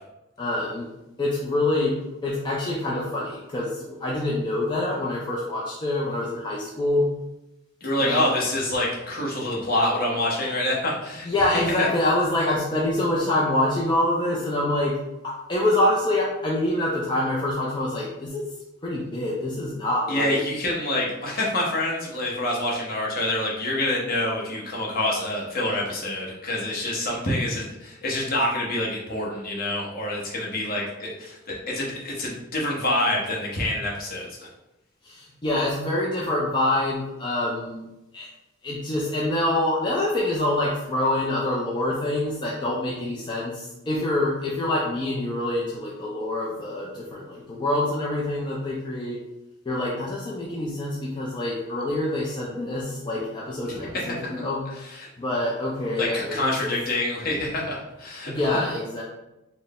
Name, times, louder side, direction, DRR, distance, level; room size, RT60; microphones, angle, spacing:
voice 1, 0.4-0.9 1.2-1.9 2.2-7.1 8.0-8.3 11.2-14.9 15.2-18.4 18.8-20.4 35.0-37.8 38.1-38.3 38.6-49.2 49.7-54.6 55.2-56.5 58.3-59.0, left 1 dB, 20° left, -5 dB, 0.5 m, -26 dB
voice 2, 7.8-11.3 11.8-11.9 20.1-34.3 53.7-54.4 54.7-55.1 56.0-58.3, left 1 dB, 45° left, -3 dB, 1.0 m, -26 dB
4.2 x 2.1 x 3.5 m, 0.93 s
head